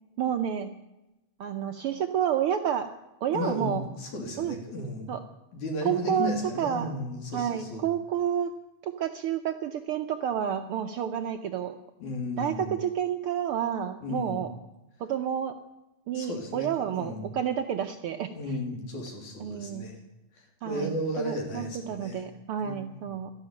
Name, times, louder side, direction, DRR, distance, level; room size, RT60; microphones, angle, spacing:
voice 1, 0.2-0.7 1.4-2.9 3.2-3.8 4.4-4.6 5.1-5.2 5.8-6.3 6.6-6.9 7.3-8.5 8.8-11.8 12.4-14.5 15.0-15.5 16.1-18.6 19.4-19.9 20.6-23.3, right 9 dB, 75° right, 7 dB, 1.3 m, -30 dB
voice 2, 3.3-5.1 5.5-7.8 12.0-12.7 14.0-14.4 16.1-16.7 17.0-17.3 18.3-20.0 20.4-22.2 22.6-22.9, left 1 dB, 90° left, 2 dB, 4.5 m, -34 dB
13.0 x 11.5 x 8.8 m, 0.97 s
omnidirectional pair, 3.3 m